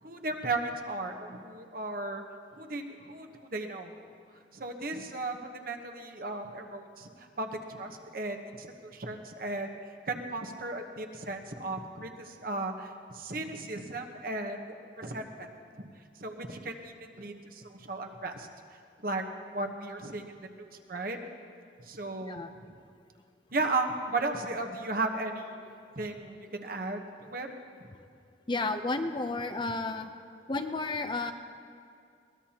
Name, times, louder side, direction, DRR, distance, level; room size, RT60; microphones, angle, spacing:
voice 1, 0.0-2.2 2.5-3.9 4.5-9.7 10.1-14.7 15.0-15.5 15.8-15.9 16.2-18.5 19.0-19.2 19.5-20.2 20.6-21.2 21.8-22.4 23.5-27.5, right 2 dB, 50° right, 4 dB, 1.1 m, -35 dB
voice 2, 28.5-30.1 30.5-31.3, left 3 dB, 25° left, 7 dB, 0.6 m, -32 dB
22.0 x 18.5 x 2.9 m, 2.3 s
head